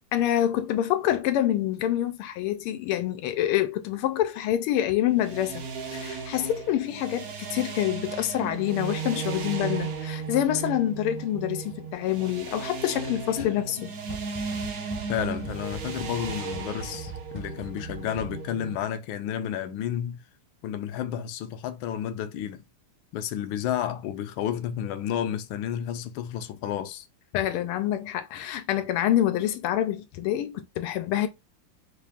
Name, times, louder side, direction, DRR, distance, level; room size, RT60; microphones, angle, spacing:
voice 1, 0.1-5.6 5.9-13.9 27.3-31.3, left 12 dB, 90° left, 1.5 m, -26 dB
sound 1, 5.1-18.8, right 5 dB, 75° right, 0.8 m, -35 dB
voice 2, 13.4-13.9 15.1-20.2 20.6-22.6 23.1-27.1, left 10 dB, 75° left, 1.3 m, -31 dB
sound 2, 14.1-18.7, right 3 dB, 30° left, 0.4 m, -41 dB
4.5 x 2.4 x 3.5 m
omnidirectional pair, 2.4 m